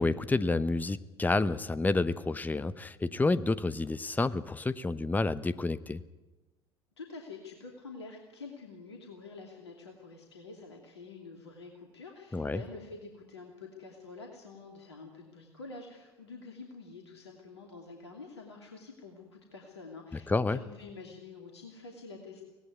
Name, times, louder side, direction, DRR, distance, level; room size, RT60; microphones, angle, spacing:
voice 1, 0.0-6.0 12.3-12.6 20.3-20.6, left 3 dB, 10° left, 15 dB, 0.9 m, -29 dB
voice 2, 7.0-22.4, left 3 dB, 80° left, 2 dB, 2.7 m, -47 dB
24.0 x 18.0 x 9.3 m, 1.1 s
figure-of-eight pair, 60°, 14 cm